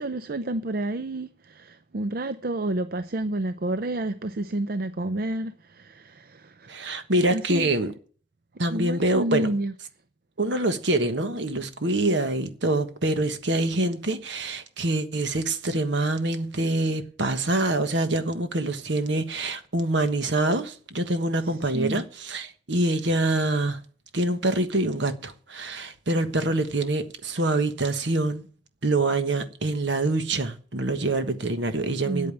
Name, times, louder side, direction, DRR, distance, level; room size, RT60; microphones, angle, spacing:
voice 1, 0.0-6.7 7.3-7.7 8.7-9.7 21.4-22.0 32.0-32.3, right 1 dB, 45° right, 0.5 m, -30 dB
voice 2, 6.7-7.9 8.6-9.5 10.4-23.8 24.1-28.5 28.8-32.3, right 2 dB, 65° right, 1.3 m, -25 dB
9.1 x 8.6 x 9.0 m
head